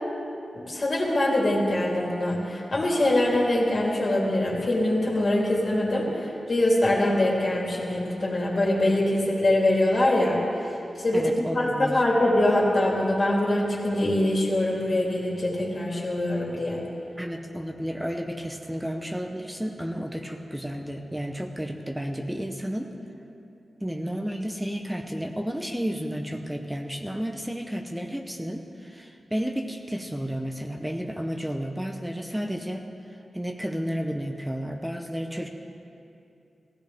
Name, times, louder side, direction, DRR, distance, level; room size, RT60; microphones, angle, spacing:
voice 1, 0.5-16.8, left 1 dB, 40° left, -4 dB, 3.1 m, -24 dB
voice 2, 11.1-12.0 17.2-22.9 23.8-35.5, equal, 5° right, 4 dB, 0.8 m, -32 dB
19.5 x 16.0 x 3.5 m, 2.8 s
wide cardioid pair, 125°, 0 cm